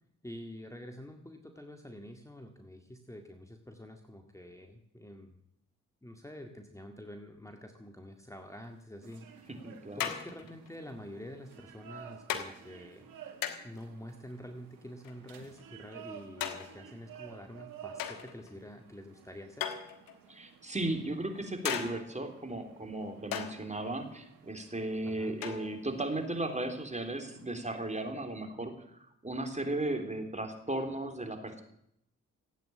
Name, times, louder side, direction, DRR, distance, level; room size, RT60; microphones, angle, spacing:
voice 1, 0.2-5.4 6.0-9.6 9.9-13.2 13.6-19.7 25.1-25.4, left 1 dB, 10° left, 5 dB, 2.0 m, -47 dB
sound 1, 9.0-28.1, right 8 dB, 85° right, 1.7 m, -54 dB
sound 2, 9.1-9.2 10.0-10.7 11.5-11.7 12.3-12.5 13.4-13.8 15.0-15.6 16.4-16.9 18.0-18.5 19.6-20.3 21.6-22.2 23.3-23.6 25.4-25.9, left 10 dB, 90° left, 1.4 m, -37 dB
voice 2, 9.6-10.1 20.3-28.7 29.2-31.6, right 2 dB, 20° right, 5 dB, 3.6 m, -35 dB
15.5 x 9.0 x 8.8 m, 0.75 s
supercardioid pair, 45°, 33 cm